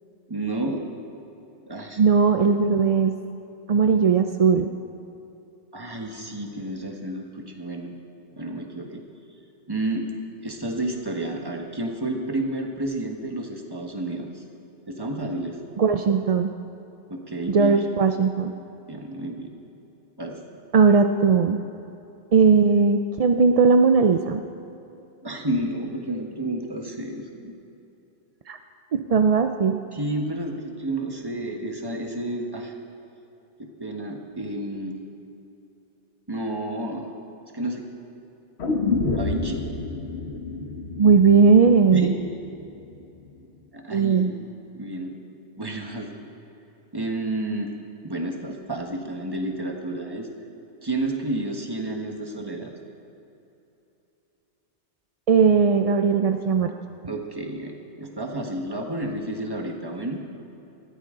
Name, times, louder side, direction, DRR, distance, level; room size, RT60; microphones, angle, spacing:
voice 1, 0.3-0.8 1.7-2.0 5.7-7.9 8.3-9.0 9.7-10.1 10.4-14.4 14.9-15.6 17.1-17.9 18.9-19.5 20.2-20.6 25.2-27.6 29.9-32.7 33.6-35.0 36.3-37.1 37.5-37.9 39.2-39.7 41.9-42.1 43.7-44.3 44.7-45.2 45.6-46.1 46.9-47.7 48.0-50.3 50.8-52.7 57.1-60.2, right 1 dB, 20° right, 2 dB, 1.4 m, -30 dB
voice 2, 2.0-3.1 3.7-4.7 15.8-16.5 17.5-18.5 20.7-21.6 22.3-24.4 28.5-28.6 28.9-29.8 41.0-42.1 43.9-44.3 55.3-56.7, right 5 dB, 50° right, 6 dB, 0.4 m, -18 dB
sound 1, 38.6-42.6 42.9-43.0, left 3 dB, 70° left, 1.4 m, -29 dB
19.0 x 14.0 x 3.8 m, 2.9 s
omnidirectional pair, 1.2 m